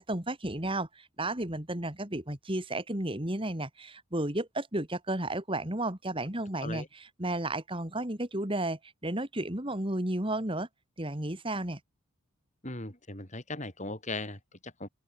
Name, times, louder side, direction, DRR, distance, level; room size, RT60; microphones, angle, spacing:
voice 1, 0.0-10.7 11.0-11.8, right 1 dB, 25° right, 2.6 m, -33 dB
voice 2, 12.6-14.9, left 2 dB, 35° left, 7.3 m, -38 dB
open air
head